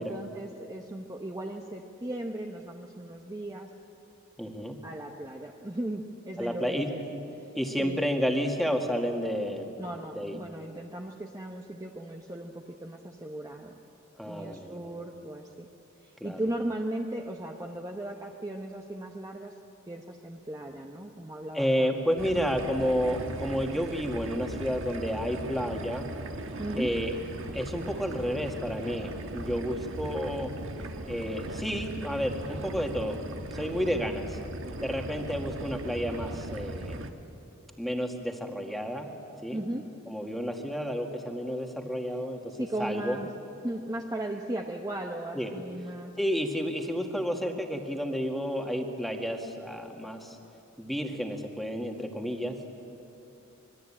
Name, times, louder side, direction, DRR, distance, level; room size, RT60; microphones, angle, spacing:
voice 1, 0.0-3.7 4.8-7.0 7.3-7.5 7.8-8.0 9.8-13.8 14.2-15.7 16.0-19.6 19.9-22.0 26.6-26.9 39.5-39.9 42.5-43.3 43.6-46.1, right 1 dB, 15° right, 1 dB, 1.0 m, -37 dB
voice 2, 4.4-4.8 6.4-6.9 7.6-9.7 10.1-10.4 14.2-14.8 16.2-16.4 21.5-26.1 26.7-27.2 27.5-30.5 31.1-34.4 34.8-37.1 37.8-39.1 39.4-39.6 40.1-42.4 42.8-43.2 45.3-45.5 46.2-50.4 50.8-52.6, equal, ahead, 2 dB, 2.0 m, -31 dB
sound 1, 22.2-37.1, right 1 dB, 65° right, 1.5 m, -39 dB
26.0 x 22.0 x 8.8 m, 2.8 s
head